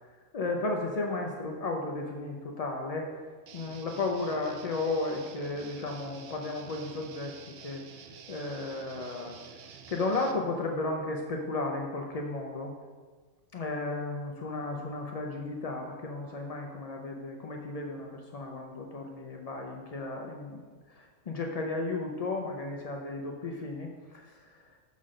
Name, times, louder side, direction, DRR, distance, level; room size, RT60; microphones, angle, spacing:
voice 1, 0.3-3.1 3.5-7.3 7.6-7.8 8.3-9.3 9.9-12.7 13.5-20.6 20.9-24.5, left 2 dB, 70° left, 1 dB, 0.3 m, -34 dB
Guitar, 3.5-10.3, right 6 dB, 65° right, 0.6 m, -49 dB
6.0 x 4.1 x 6.2 m, 1.5 s
omnidirectional pair, 1.4 m